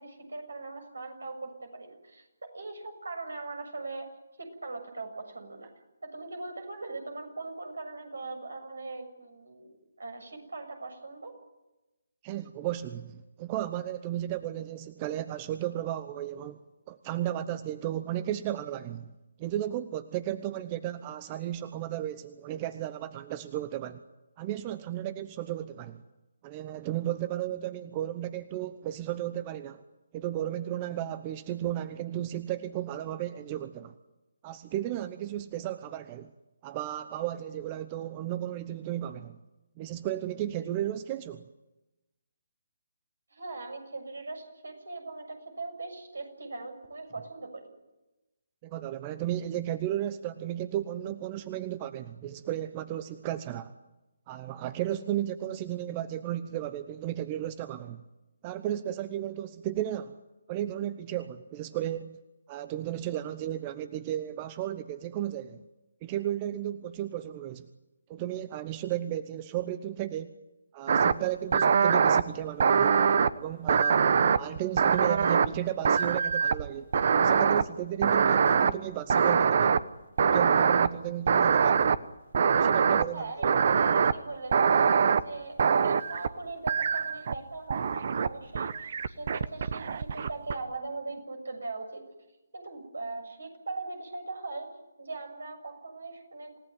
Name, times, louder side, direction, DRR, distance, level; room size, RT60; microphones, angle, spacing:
voice 1, 0.0-2.2 2.5-4.1 4.4-5.7 6.0-11.3 43.3-47.6 83.1-85.6 85.8-92.1 92.5-94.7 95.0-96.5, right 3 dB, 75° right, 6 dB, 7.3 m, -40 dB
voice 2, 12.2-16.6 16.9-19.1 19.4-24.0 24.4-26.0 26.4-29.8 30.1-34.0 34.4-36.3 36.6-39.4 39.8-41.5 48.6-53.7 54.3-58.0 58.4-60.2 60.5-62.2 62.5-65.6 66.0-67.7 68.1-70.3 70.7-73.0 73.4-74.1 74.4-76.9 77.2-79.8 80.2-81.9 82.6-83.3, right 12 dB, 25° right, 13 dB, 0.9 m, -34 dB
sound 1, 70.9-71.1 71.5-72.2 72.6-73.3 73.7-75.6 75.8-76.7 76.9-77.6 78.0-78.7 79.1-79.8 80.2-80.9 81.3-82.0 82.3-83.0 83.4-84.1 84.5-85.2 85.6-86.3 86.7-87.4 87.7-88.3 88.5-90.5, right 6 dB, 50° right, 1.0 m, -23 dB
28.0 x 17.5 x 9.4 m, 1.0 s
figure-of-eight pair, 145°, 0 cm